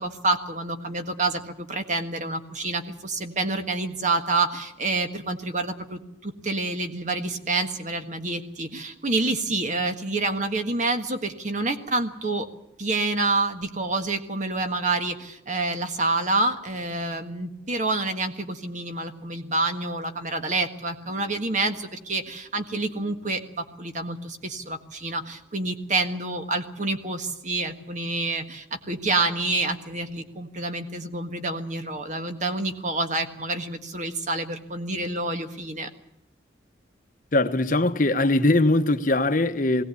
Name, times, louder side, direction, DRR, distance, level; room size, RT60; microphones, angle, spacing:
voice 1, 0.0-12.5 12.8-35.9, right 2 dB, 40° right, 1.6 m, -28 dB
voice 2, 37.3-39.8, left 2 dB, 45° left, 1.1 m, -21 dB
20.0 x 17.5 x 8.5 m
head